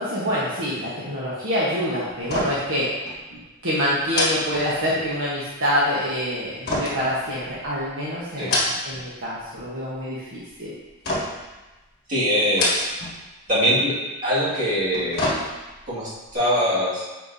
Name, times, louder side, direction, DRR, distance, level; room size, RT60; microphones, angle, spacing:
voice 1, 0.0-2.9 3.3-10.7, equal, 60° right, -8 dB, 1.3 m, -26 dB
sound 1, 2.2-2.8 3.1-3.2 4.1-5.2 6.7-7.8 8.3-9.1 9.4-10.0 11.0-11.6 12.4-13.2 13.5-13.6 14.7-15.9 16.3-16.4, left 1 dB, 45° left, 1.5 m, -27 dB
voice 2, 12.1-12.9 13.5-14.0 14.2-15.2 15.9-17.1, equal, 35° right, -9 dB, 2.2 m, -22 dB
9.1 x 4.5 x 2.8 m, 1.1 s
head